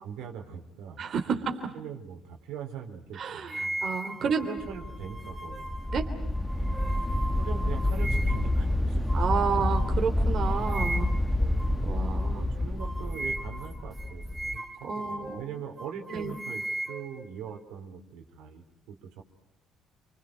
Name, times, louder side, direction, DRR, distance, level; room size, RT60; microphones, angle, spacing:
voice 1, 0.0-1.0 1.6-3.8 4.2-6.0 7.4-9.3 9.5-9.7 10.7-10.8 11.3-11.8 12.3-19.2, right 7 dB, 90° right, 3 dB, 4.1 m, -42 dB
voice 2, 1.0-1.5 3.1-4.5 5.9-6.1 9.1-11.1 11.8-12.4 14.8-15.4 16.1-16.4, right 6 dB, 50° right, 4 dB, 3.3 m, -30 dB
sound 1, 3.5-8.6 9.1-9.3 9.7-9.9 10.4-11.3 11.6-11.8 12.2-12.3 12.8-15.5 15.8-17.6, right 1 dB, 10° right, 2.4 m, -38 dB
sound 2, 4.6-14.6, left 1 dB, 10° left, 1.4 m, -28 dB
30.0 x 25.0 x 6.3 m, 0.81 s
cardioid pair, 115°, 0 cm